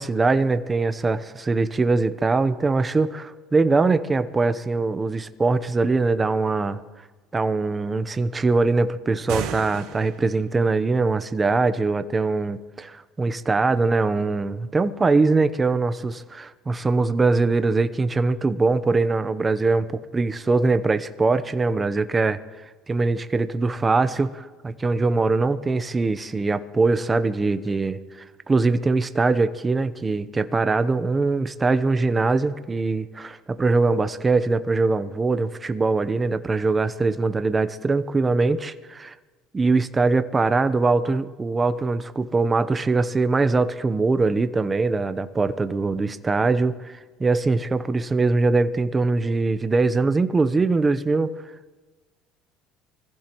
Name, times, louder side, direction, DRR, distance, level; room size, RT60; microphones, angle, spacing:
voice 1, 0.0-6.8 7.3-22.4 22.9-28.0 28.5-39.1 39.5-51.3, right 3 dB, 20° right, 11 dB, 0.8 m, -22 dB
sound 1, 9.1-10.4, right 8 dB, 75° right, 1.9 m, -33 dB
24.5 x 15.5 x 3.1 m, 1.3 s
cardioid pair, 120°, 0 cm